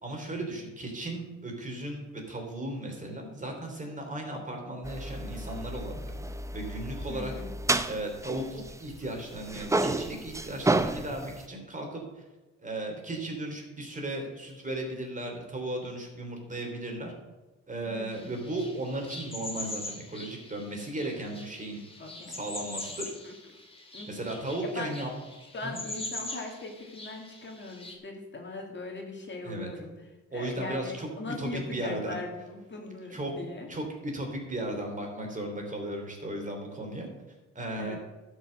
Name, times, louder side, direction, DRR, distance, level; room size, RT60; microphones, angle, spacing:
voice 1, 0.0-6.1 6.5-7.3 7.8-12.0 12.6-17.1 17.7-21.8 22.3-23.1 24.1-25.1 25.6-25.8 29.4-29.7 30.3-31.1 31.4-32.2 33.1-33.3 33.7-37.1 37.5-38.0, right 1 dB, 25° right, 2 dB, 3.1 m, -36 dB
sound 1, 4.8-9.1 9.3-11.4, right 2 dB, 10° right, 0.6 m, -31 dB
voice 2, 7.1-7.5 17.8-18.4 22.0-22.4 23.2-23.3 23.9-24.3 24.6-25.0 25.4-33.7 37.8-38.0, left 3 dB, 40° left, 1 dB, 2.3 m, -40 dB
sound 2, 18.1-27.9, left 2 dB, 20° left, 2.2 m, -42 dB
11.5 x 5.5 x 7.6 m, 1.1 s
cardioid pair, 90°, 30 cm